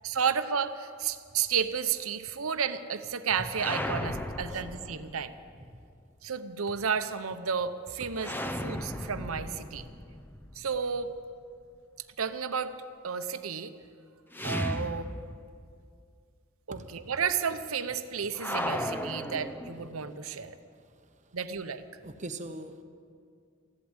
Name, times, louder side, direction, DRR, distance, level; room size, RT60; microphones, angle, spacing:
voice 1, 0.0-5.3 6.2-9.9 10.6-11.1 12.2-12.8 13.0-13.7 14.4-15.1 16.7-20.6 21.3-21.8, right 6 dB, 80° right, 11 dB, 0.8 m, -32 dB
sound 1, 3.5-5.5 8.2-11.2 14.3-15.7 16.0-16.1 18.4-20.1, left 1 dB, 10° left, 0.6 m, -36 dB
voice 2, 22.0-22.8, right 2 dB, 35° right, 8 dB, 0.9 m, -40 dB
15.5 x 11.5 x 8.0 m, 2.3 s
head